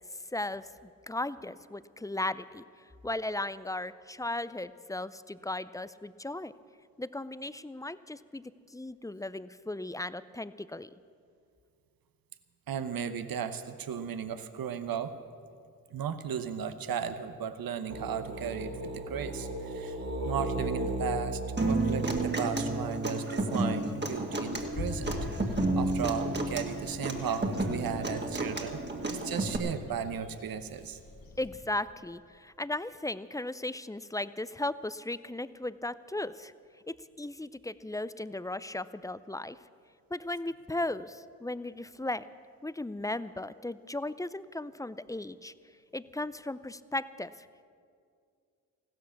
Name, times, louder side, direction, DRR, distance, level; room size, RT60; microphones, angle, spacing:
voice 1, 0.3-0.7 1.1-2.6 3.0-6.5 7.0-8.4 8.7-10.9 31.4-36.5 36.9-39.6 40.1-42.3 42.6-45.5 45.9-47.5, left 2 dB, 10° left, 15 dB, 0.5 m, -36 dB
voice 2, 12.7-15.1 15.9-20.0 20.2-21.4 21.7-25.1 25.8-28.8 29.1-31.0, right 7 dB, 65° right, 11 dB, 1.0 m, -35 dB
sound 1, 17.9-23.0, right 1 dB, 45° right, 2.1 m, -36 dB
Human voice / Acoustic guitar, 21.6-29.6, right 2 dB, 30° right, 2.0 m, -31 dB
sound 2, 23.7-31.6, left 2 dB, 60° left, 1.9 m, -43 dB
15.5 x 12.5 x 7.1 m, 2.3 s
supercardioid pair, 50°, 37 cm